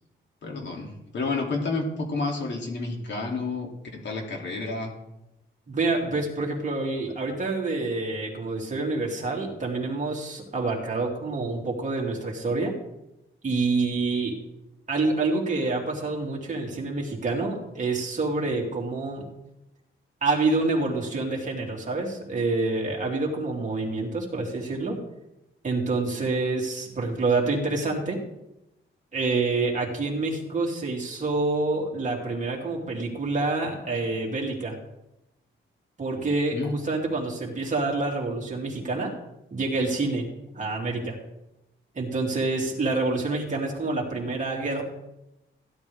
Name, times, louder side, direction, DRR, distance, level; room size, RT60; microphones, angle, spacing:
voice 1, 0.4-4.9 36.5-36.7, left 3 dB, 60° left, 1 dB, 2.9 m, -30 dB
voice 2, 5.7-12.7 13.4-14.4 14.9-19.3 20.2-25.0 25.6-28.2 29.1-34.8 36.0-39.1 39.5-40.2 40.5-41.2 41.9-44.8, right 3 dB, 35° right, -1 dB, 3.1 m, -27 dB
16.0 x 11.0 x 3.6 m, 0.89 s
wide cardioid pair, 135°, 21 cm